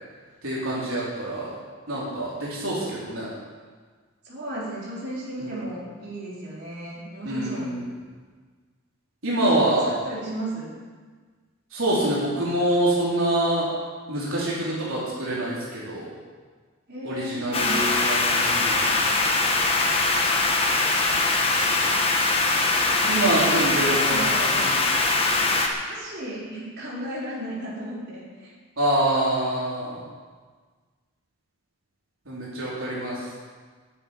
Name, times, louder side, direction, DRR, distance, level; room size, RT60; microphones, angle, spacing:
voice 1, 0.4-1.5 1.9-3.3 5.4-5.6 7.2-7.9 9.2-9.9 11.7-13.7 14.1-16.1 17.0-18.8 23.1-24.7 28.8-30.0 32.3-33.2, right 1 dB, 75° right, -7 dB, 4.1 m, -25 dB
voice 2, 4.2-7.7 9.4-10.7 16.9-18.0 23.0-24.6 25.8-28.5, right 1 dB, 50° right, -7 dB, 4.6 m, -35 dB
sound 1, 17.5-25.7, left 3 dB, 25° left, 1.4 m, -22 dB
10.5 x 9.6 x 9.4 m, 1.5 s
head